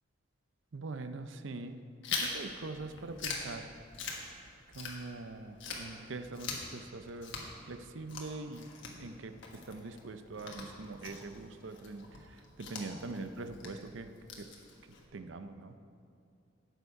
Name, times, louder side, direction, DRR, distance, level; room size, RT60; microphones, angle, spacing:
voice 1, 0.7-1.8 2.1-3.7 4.7-7.4 7.7-8.7 9.0-14.1 14.4-14.5 15.1-15.8, right 3 dB, 65° right, 9 dB, 0.6 m, -43 dB
Chewing mastication, 2.0-5.3 5.6-15.0, left 4 dB, 65° left, 1.4 m, -43 dB
12.5 x 8.1 x 4.8 m, 2.4 s
head